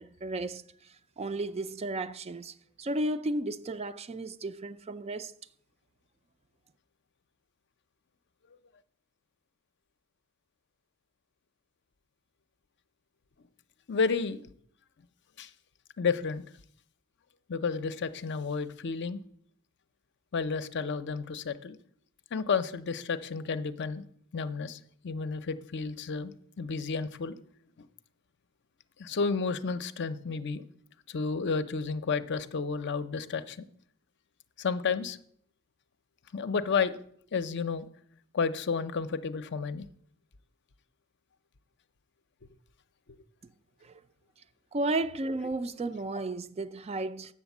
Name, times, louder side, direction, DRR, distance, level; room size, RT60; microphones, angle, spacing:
voice 1, 0.0-5.3 43.8-44.0 44.7-47.3, right 2 dB, 25° right, 0.4 m, -34 dB
voice 2, 13.9-14.5 15.4-15.5 16.0-16.4 17.5-19.2 20.3-21.8 22.3-24.0 24.3-27.3 29.0-30.6 31.1-33.6 34.6-35.2 36.3-37.0 37.3-37.9 38.3-39.9, left 5 dB, 50° left, 0.6 m, -31 dB
8.5 x 7.3 x 7.1 m
head